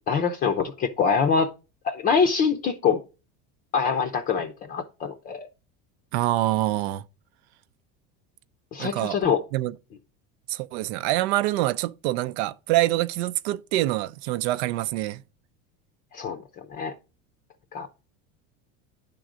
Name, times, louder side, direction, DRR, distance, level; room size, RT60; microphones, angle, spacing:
voice 1, 0.1-1.5 1.8-3.0 3.7-5.5 8.7-9.4 16.1-16.4 16.8-16.9 17.7-17.9, left 6 dB, 25° left, 0.6 m, -24 dB
voice 2, 6.1-7.0 8.8-9.2 9.5-9.8 10.5-15.2, right 16 dB, 75° right, 0.6 m, -25 dB
10.5 x 3.8 x 6.1 m
cardioid pair, 170°, 33 cm